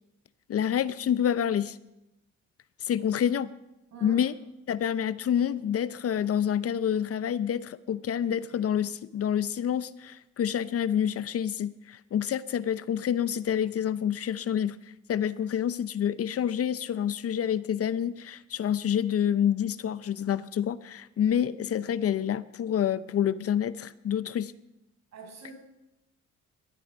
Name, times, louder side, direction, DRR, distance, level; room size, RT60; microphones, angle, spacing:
voice 1, 0.5-1.8 2.8-3.5 4.0-4.3 4.7-14.8 15.1-24.5, left 9 dB, 50° left, 16 dB, 0.6 m, -28 dB
voice 2, 25.1-25.5, right 4 dB, 60° right, 1 dB, 6.3 m, -43 dB
16.5 x 12.5 x 5.2 m, 0.95 s
cardioid pair, 90°, 30 cm